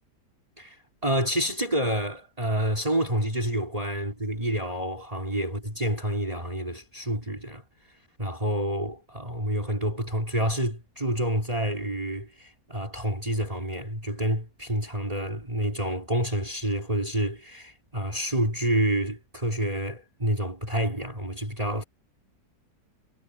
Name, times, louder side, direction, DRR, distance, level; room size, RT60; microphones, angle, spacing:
voice 1, 1.0-7.6 8.2-21.8, right 1 dB, 20° right, 3.9 m, -28 dB
omnidirectional pair, 1.9 m